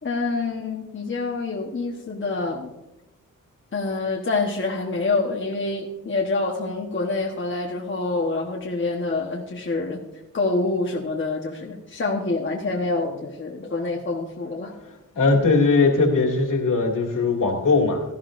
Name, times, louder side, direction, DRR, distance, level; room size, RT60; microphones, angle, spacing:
voice 1, 0.0-2.7 3.7-10.0 10.3-14.7, left 3 dB, 35° left, -1 dB, 1.1 m, -26 dB
voice 2, 15.2-18.0, left 3 dB, 65° left, 0 dB, 2.4 m, -19 dB
17.0 x 12.5 x 2.5 m, 0.93 s
wide cardioid pair, 155°, 33 cm